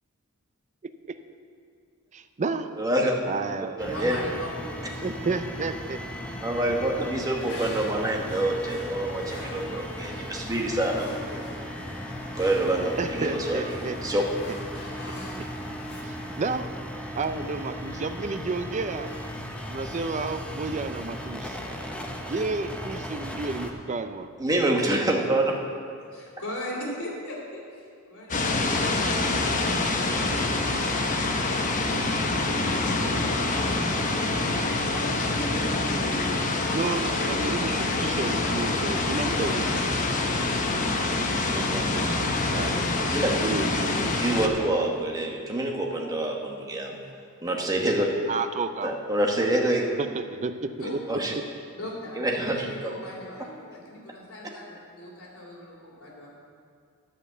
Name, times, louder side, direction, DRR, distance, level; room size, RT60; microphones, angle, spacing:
voice 1, 2.1-2.7 3.3-3.8 5.0-6.0 13.0-14.5 15.4-15.5 16.0-16.7 17.1-19.1 19.7-21.6 22.3-24.3 36.7-39.8 41.5-42.9 43.4-44.4 48.3-48.9 50.0-50.7, right 3 dB, 35° right, 9 dB, 0.5 m, -31 dB
voice 2, 2.8-3.2 3.8-4.2 6.4-11.4 12.4-14.2 24.4-25.4 43.1-43.3 44.2-47.0 47.4-48.1 48.8-49.8 51.1-51.3 52.2-52.9, right 1 dB, 15° right, 0 dB, 1.1 m, -26 dB
voice 3, 3.8-5.3 26.1-29.6 31.5-34.1 35.2-38.3 50.8-50.9 51.7-52.2 52.5-56.4, left 1 dB, 70° left, -6 dB, 2.8 m, -40 dB
sound 1, 3.8-23.7, equal, 5° left, 0.7 m, -37 dB
sound 2, 7.4-16.0, left 2 dB, 55° left, 1.8 m, -43 dB
sound 3, 28.3-44.5, left 2 dB, 35° left, 0.8 m, -26 dB
11.0 x 5.2 x 7.9 m, 2.3 s
head